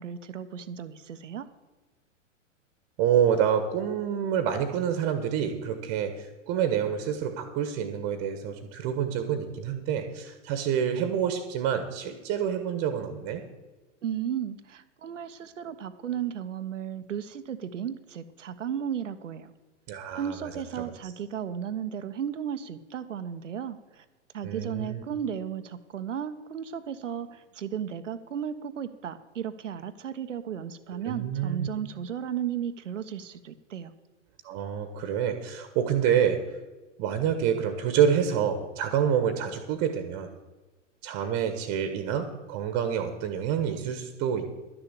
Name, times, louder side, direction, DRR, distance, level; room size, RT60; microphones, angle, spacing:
voice 1, 0.0-1.5 14.0-19.5 20.1-24.0 24.3-33.9, right 8 dB, 75° right, 11 dB, 1.1 m, -34 dB
voice 2, 3.0-13.4 19.9-20.5 24.4-25.0 30.9-31.7 34.4-36.4 37.0-40.3 41.0-44.5, right 8 dB, 40° right, 8 dB, 1.5 m, -27 dB
12.0 x 7.1 x 8.2 m, 1.2 s
hypercardioid pair, 105°, 38 cm